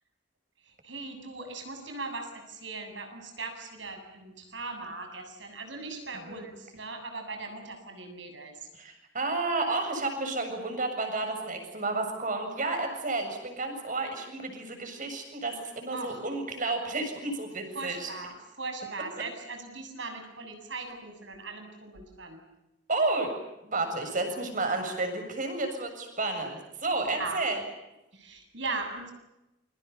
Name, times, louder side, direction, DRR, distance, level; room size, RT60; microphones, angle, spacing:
voice 1, 0.6-8.7 15.9-16.2 17.7-22.4 27.0-27.4 28.1-29.1, right 3 dB, 80° right, 5 dB, 7.5 m, -39 dB
voice 2, 8.7-18.1 22.9-23.3 23.6-27.6, right 3 dB, 45° right, 5 dB, 7.2 m, -31 dB
28.5 x 24.5 x 7.1 m, 0.92 s
head